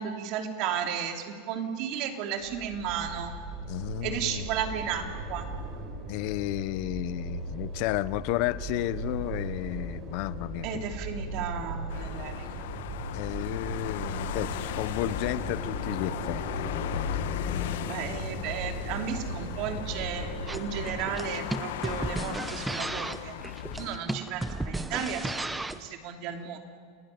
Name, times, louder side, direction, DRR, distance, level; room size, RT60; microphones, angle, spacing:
voice 1, 0.0-3.3 4.0-5.5 10.6-12.6 17.9-23.4 23.8-26.6, right 8 dB, 45° right, 4 dB, 3.0 m, -34 dB
sound 1, 2.4-21.0, right 2 dB, 30° right, 5.6 m, -37 dB
voice 2, 3.7-4.4 6.1-10.7 13.1-18.0, left 17 dB, 50° left, 17 dB, 0.7 m, -33 dB
sound 2, 11.9-24.0, left 12 dB, 75° left, 1.1 m, -37 dB
sound 3, 20.5-25.9, right 2 dB, 5° right, 0.8 m, -34 dB
29.0 x 18.0 x 9.4 m, 2.1 s
supercardioid pair, 155°, 0 cm